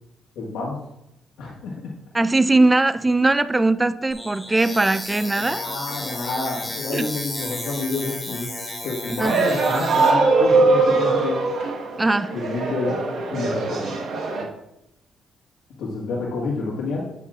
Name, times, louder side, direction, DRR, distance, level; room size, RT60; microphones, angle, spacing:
voice 1, 0.3-0.8 1.4-1.8 5.4-8.5 8.8-11.4 12.3-13.0 13.3-13.9 15.8-17.0, left 3 dB, 75° left, 1.6 m, -29 dB
voice 2, 2.1-5.6 6.9-7.1 9.1-9.4 12.0-12.3, right 2 dB, 15° right, 0.3 m, -20 dB
sound 1, 4.1-10.1, left 1 dB, 15° left, 1.4 m, -33 dB
sound 2, 9.2-14.4, right 3 dB, 70° right, 1.3 m, -21 dB
9.1 x 7.1 x 2.4 m
cardioid pair, 90°, 0 cm